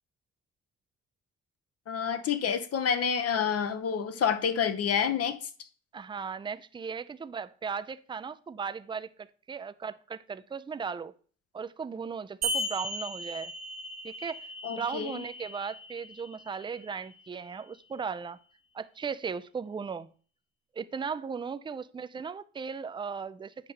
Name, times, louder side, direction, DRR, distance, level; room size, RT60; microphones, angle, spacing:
voice 1, 1.9-5.4 14.6-15.2, left 7 dB, 55° left, 0.9 m, -28 dB
voice 2, 5.9-11.1 11.5-13.5 14.0-18.4 18.7-20.1 20.7-23.7, right 6 dB, 15° right, 0.4 m, -37 dB
sound 1, 12.4-17.4, right 1 dB, 60° right, 1.3 m, -37 dB
8.2 x 5.2 x 2.9 m
cardioid pair, 90°, 30 cm